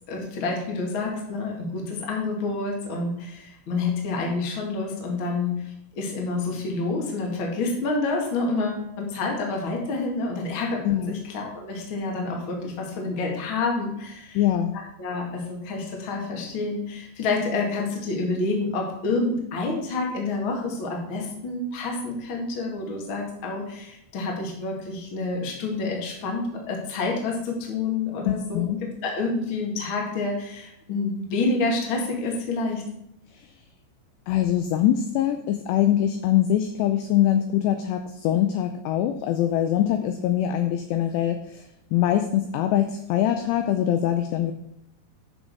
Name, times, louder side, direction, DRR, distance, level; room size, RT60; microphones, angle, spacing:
voice 1, 0.1-14.4 15.0-32.8, left 3 dB, 50° left, 0 dB, 1.5 m, -28 dB
voice 2, 14.4-14.7 28.2-28.8 34.3-41.6 41.9-44.5, left 11 dB, 85° left, 7 dB, 2.4 m, -23 dB
10.0 x 6.4 x 4.7 m, 0.80 s
omnidirectional pair, 5.6 m